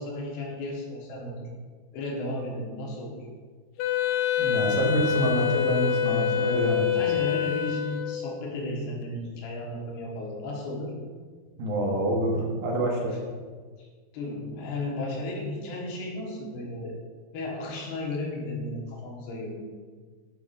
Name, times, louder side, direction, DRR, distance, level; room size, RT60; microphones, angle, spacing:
voice 1, 0.0-1.5 1.9-3.3 7.0-10.9 13.8-13.9 14.1-17.0 17.3-19.6, left 2 dB, 70° left, -2 dB, 3.5 m, -34 dB
Wind instrument woodwind instrument, 3.8-8.4, left 10 dB, 90° left, 2.3 m, -26 dB
voice 2, 4.4-6.9 11.6-13.1, right 1 dB, 65° right, -1 dB, 2.5 m, -26 dB
9.6 x 8.2 x 2.6 m, 1.5 s
omnidirectional pair, 5.2 m